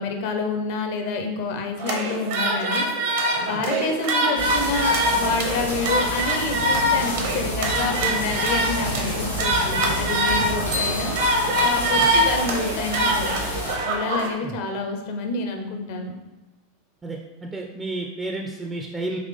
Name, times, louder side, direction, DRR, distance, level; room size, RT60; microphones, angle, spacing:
voice 1, 0.0-11.1 11.6-13.4 13.8-16.1, left 3 dB, 55° left, 4 dB, 0.6 m, -28 dB
sound 1, 1.8-14.3, right 1 dB, 60° right, 0.7 m, -24 dB
sound 2, 4.4-13.7, left 1 dB, 90° left, 0.9 m, -29 dB
sound 3, 10.7-12.6, left 3 dB, 85° right, 1.3 m, -33 dB
voice 2, 17.0-19.2, right 2 dB, 15° right, 1 dB, 0.4 m, -31 dB
4.0 x 2.9 x 3.2 m, 1.1 s
figure-of-eight pair, 85°, 0 cm